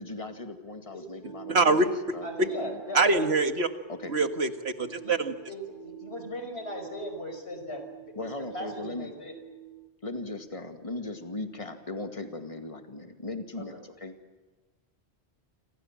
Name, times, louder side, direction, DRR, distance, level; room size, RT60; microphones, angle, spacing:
voice 1, 0.0-1.8 2.1-2.8 3.9-4.1 8.2-9.1 10.0-14.1, left 2 dB, 30° left, 6 dB, 2.2 m, -38 dB
sound 1, 1.2-9.9, right 16 dB, 50° right, 2.9 m, -46 dB
voice 2, 1.5-1.9 2.9-3.7 4.1-5.3, right 3 dB, 80° right, 8 dB, 1.9 m, -24 dB
voice 3, 2.2-3.3 5.0-5.1 5.5-8.1 8.5-9.3 13.6-13.7, left 1 dB, 75° left, 6 dB, 5.5 m, -38 dB
29.0 x 26.5 x 7.5 m, 1.2 s
omnidirectional pair, 1.1 m